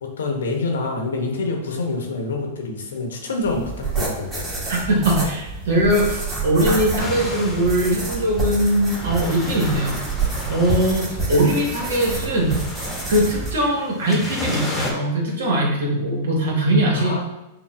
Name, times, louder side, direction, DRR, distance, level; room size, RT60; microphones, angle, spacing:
voice 1, 0.0-4.4 16.9-17.2, left 3 dB, 75° left, 2 dB, 0.8 m, -26 dB
sound 1, 3.4-13.5, right 3 dB, 20° right, 1.4 m, -28 dB
voice 2, 4.7-10.0 10.5-12.6 13.1-17.1, right 1 dB, 70° right, -1 dB, 1.2 m, -21 dB
sound 2, 7.0-14.9, left 1 dB, 15° left, 0.9 m, -33 dB
5.9 x 2.2 x 2.3 m, 0.94 s
hypercardioid pair, 105°, 0 cm